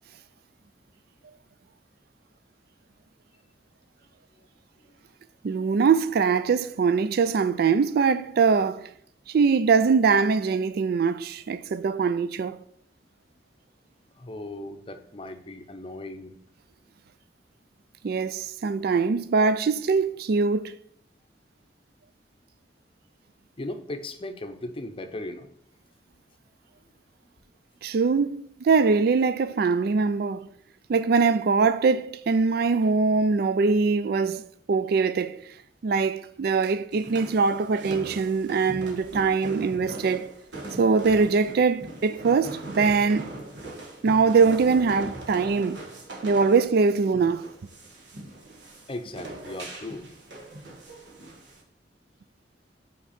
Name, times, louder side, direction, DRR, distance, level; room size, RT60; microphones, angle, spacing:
voice 1, 5.4-8.9 9.3-12.6 18.0-20.7 27.8-30.5 30.9-34.4 34.7-35.4 35.8-40.3 40.8-43.3 44.0-45.8 46.2-47.5, right 5 dB, 60° right, 0.3 m, -22 dB
voice 2, 14.1-16.4 23.6-25.5 27.2-27.3 48.9-50.1, left 1 dB, 30° left, 0.6 m, -37 dB
sound 1, 36.9-51.6, right 1 dB, 90° right, 1.5 m, -40 dB
5.8 x 4.6 x 4.2 m
head